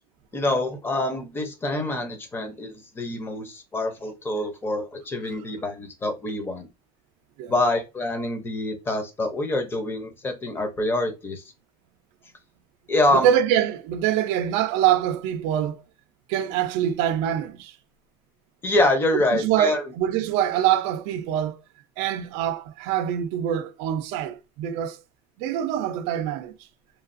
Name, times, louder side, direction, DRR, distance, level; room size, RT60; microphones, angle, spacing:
voice 1, 0.3-6.7 7.5-11.4 12.9-13.3 18.6-19.8, left 2 dB, 20° left, 0.6 m, -26 dB
voice 2, 13.1-15.8 16.3-17.7 19.3-21.6 22.0-25.0 25.4-26.6, right 10 dB, 70° right, 0.5 m, -24 dB
3.2 x 2.3 x 2.5 m
cardioid pair, 140°, 12 cm